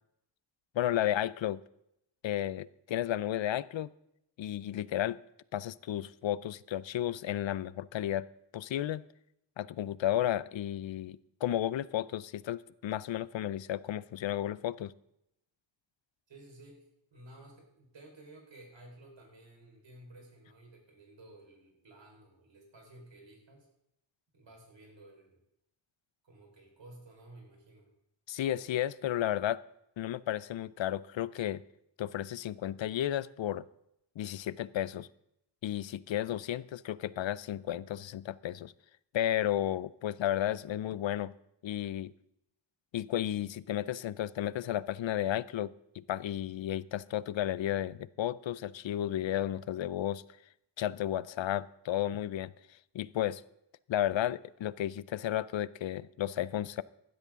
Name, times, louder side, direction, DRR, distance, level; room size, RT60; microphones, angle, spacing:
voice 1, 0.7-1.6 2.2-3.9 4.4-5.2 5.5-8.3 8.5-9.0 9.6-14.9 28.3-29.6 30.0-31.6 32.0-33.6 34.2-35.1 35.6-38.7 39.1-41.3 41.6-42.1 42.9-50.2 50.8-52.5 52.9-53.4 53.9-56.8, left 12 dB, 80° left, 19 dB, 0.6 m, -33 dB
voice 2, 16.3-16.8 17.1-23.7 24.3-25.4 26.2-27.9, right 1 dB, 75° right, 1 dB, 4.5 m, -54 dB
15.5 x 12.0 x 3.7 m, 0.80 s
wide cardioid pair, 170°, 44 cm